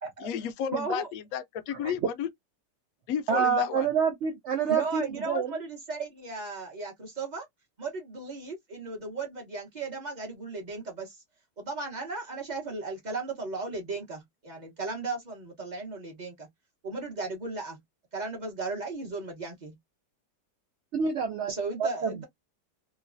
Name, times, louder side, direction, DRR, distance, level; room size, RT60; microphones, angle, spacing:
voice 1, 0.2-2.3 3.1-3.9, left 8 dB, 70° left, 0.8 m, -32 dB
voice 2, 0.7-1.1 4.7-7.5 7.8-11.2 11.6-16.5 16.8-17.8 18.1-19.8 21.5-22.2, right 3 dB, 35° right, 0.8 m, -35 dB
voice 3, 3.3-5.5 20.9-21.5 21.8-22.2, right 6 dB, 80° right, 0.6 m, -27 dB
3.1 x 2.2 x 2.5 m
omnidirectional pair, 1.9 m